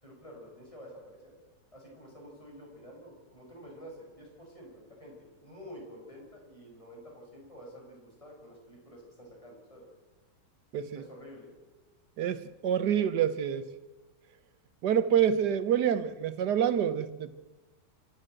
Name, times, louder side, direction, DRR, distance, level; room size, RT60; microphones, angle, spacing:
voice 1, 0.0-1.4 1.7-9.9 10.9-11.5, equal, 20° left, 6.0 m, -49 dB
voice 2, 10.7-11.0 12.2-13.7 14.8-17.3, right 9 dB, 70° right, 1.6 m, -27 dB
29.0 x 12.5 x 7.8 m
omnidirectional pair, 1.9 m